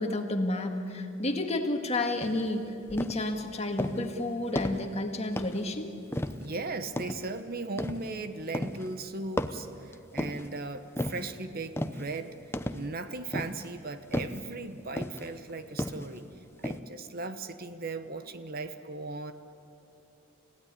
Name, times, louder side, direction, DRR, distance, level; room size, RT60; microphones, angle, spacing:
voice 1, 0.0-5.9, left 2 dB, 35° left, 4 dB, 1.9 m, -31 dB
sound 1, 2.2-2.5 3.0-3.3 3.8-4.1 4.6-4.9 5.4-5.7 6.1-6.5 7.0-7.3 7.8-8.1 8.5-8.9 9.4-10.5 11.0-11.3 11.8-12.1 12.5-12.9 13.3-13.7 14.1-14.5 15.0-15.3 15.8-16.2 16.6-16.8, left 1 dB, 10° left, 0.7 m, -34 dB
voice 2, 6.4-12.3 12.7-16.3 16.6-19.3, right 3 dB, 50° right, 10 dB, 1.1 m, -37 dB
29.5 x 16.0 x 9.8 m, 2.8 s
head